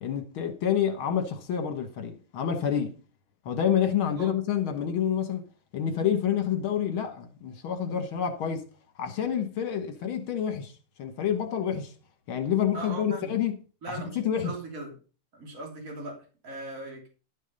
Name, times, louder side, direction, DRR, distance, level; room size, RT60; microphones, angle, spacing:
voice 1, 0.0-2.9 3.5-5.4 5.7-8.6 9.0-10.7 11.0-11.9 12.3-13.5 13.9-14.5, left 8 dB, 70° left, 2.2 m, -28 dB
voice 2, 12.7-13.4 13.8-15.0 15.3-17.1, right 2 dB, 35° right, 3.5 m, -39 dB
12.0 x 6.4 x 5.4 m
omnidirectional pair, 2.4 m